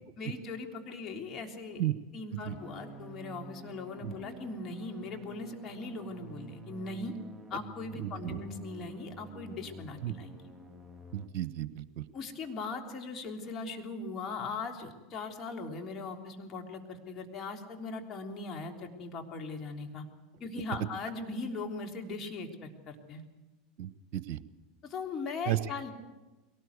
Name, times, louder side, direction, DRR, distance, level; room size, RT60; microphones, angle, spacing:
voice 1, 0.2-1.8 2.1-7.2 7.5-10.5 12.1-20.0 20.4-23.2 24.9-25.9, left 3 dB, 40° left, 3 dB, 3.4 m, -39 dB
sound 1, 2.5-11.3, right 1 dB, ahead, 2.6 m, -49 dB
voice 2, 8.0-8.4 10.0-10.1 11.1-12.0 23.8-24.4 25.5-25.6, right 13 dB, 55° right, 15 dB, 1.0 m, -33 dB
22.5 x 18.5 x 8.2 m, 1.1 s
hypercardioid pair, 85°, 0 cm